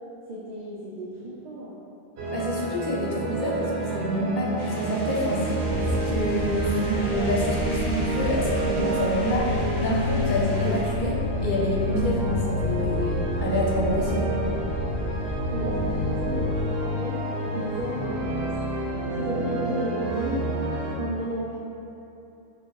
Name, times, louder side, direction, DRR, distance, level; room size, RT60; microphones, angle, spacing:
voice 1, 0.3-1.8 15.5-17.2 17.5-18.5 19.1-20.5 20.9-21.6, right 1 dB, 55° right, -6 dB, 0.5 m, -33 dB
sound 1, 2.2-21.0, equal, 85° right, 0.8 m, -29 dB
voice 2, 2.3-5.4 5.8-14.3, equal, 55° left, -5 dB, 0.8 m, -27 dB
sound 2, 4.6-10.8, right 1 dB, 20° right, 0.9 m, -39 dB
sound 3, 5.6-16.7, equal, 85° left, 1.0 m, -32 dB
4.4 x 2.4 x 3.0 m, 2.8 s
omnidirectional pair, 1.0 m